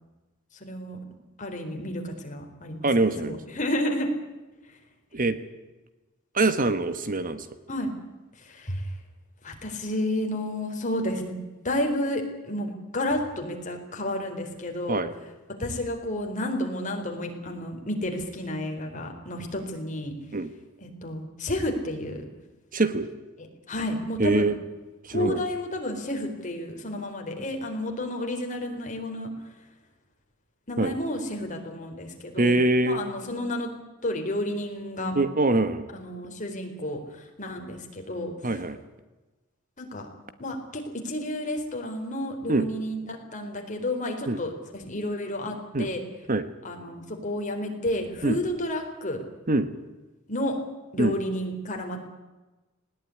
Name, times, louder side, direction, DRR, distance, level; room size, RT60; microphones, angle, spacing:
voice 1, 0.6-1.0 1.4-2.9 3.2-4.1 7.7-7.9 8.4-8.9 9.4-11.4 11.6-15.0 15.6-20.1 20.8-22.2 23.7-24.5 25.1-29.3 30.7-32.5 32.8-33.7 34.0-35.2 35.9-38.3 39.8-40.1 40.4-46.0 46.6-49.2 50.3-50.6 50.9-52.0, left 1 dB, 40° left, 3 dB, 4.3 m, -31 dB
voice 2, 2.8-3.4 5.1-5.4 6.3-7.5 14.9-15.1 20.3-20.5 22.7-23.1 24.2-24.6 25.0-25.4 30.8-30.9 32.4-33.0 35.1-35.9 38.4-38.8 42.5-42.7 44.3-44.4 45.7-45.9 46.3-46.4 48.2-48.4 49.5-49.7 51.0-51.1, right 2 dB, 40° right, 11 dB, 1.4 m, -23 dB
20.0 x 18.5 x 9.8 m, 1.1 s
head